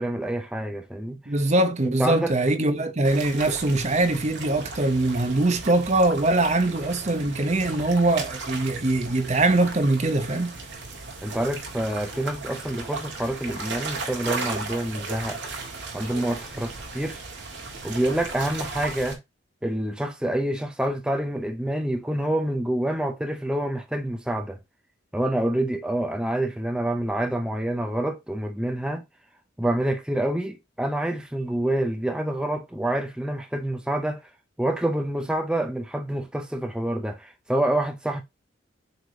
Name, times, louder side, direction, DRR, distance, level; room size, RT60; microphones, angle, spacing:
voice 1, 0.0-1.3 1.8-2.3 11.2-15.4 15.9-17.2 17.8-19.2 19.6-24.6 25.1-29.0 29.6-34.3 34.6-38.2, right 1 dB, 5° right, 0.5 m, -27 dB
voice 2, 1.3-10.5, right 2 dB, 35° right, 0.7 m, -22 dB
sound 1, 3.0-19.1, right 3 dB, 70° right, 1.9 m, -36 dB
8.0 x 3.4 x 3.9 m
head